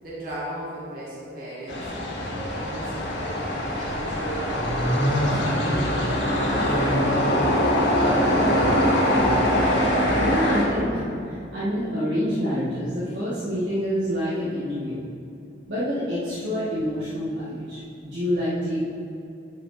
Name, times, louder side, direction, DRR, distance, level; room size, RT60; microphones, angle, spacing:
voice 1, 0.0-3.4 3.7-7.5 7.9-9.1, right 1 dB, 50° right, -8 dB, 1.8 m, -36 dB
sound 1, 1.7-10.7, equal, 85° left, 1.8 m, -22 dB
voice 2, 10.2-15.0 15.7-18.8, equal, 85° right, -10 dB, 1.8 m, -27 dB
11.0 x 4.8 x 4.2 m, 2.7 s
head